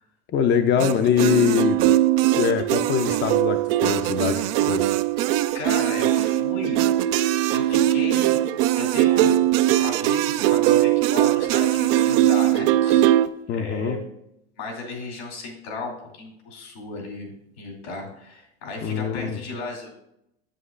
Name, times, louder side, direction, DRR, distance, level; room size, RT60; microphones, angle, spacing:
voice 1, 0.3-1.8 2.4-4.4 4.7-4.8 13.5-14.0 18.8-19.4, left 7 dB, 35° left, 6 dB, 0.6 m, -22 dB
sound 1, 0.8-13.3, right 13 dB, 60° right, 0.5 m, -20 dB
voice 2, 5.5-6.8 7.5-8.4 8.7-9.4 9.7-13.1 13.5-14.0 14.6-19.9, left 3 dB, 80° left, 0 dB, 2.8 m, -35 dB
7.7 x 7.6 x 2.5 m, 0.81 s
hypercardioid pair, 90°, 32 cm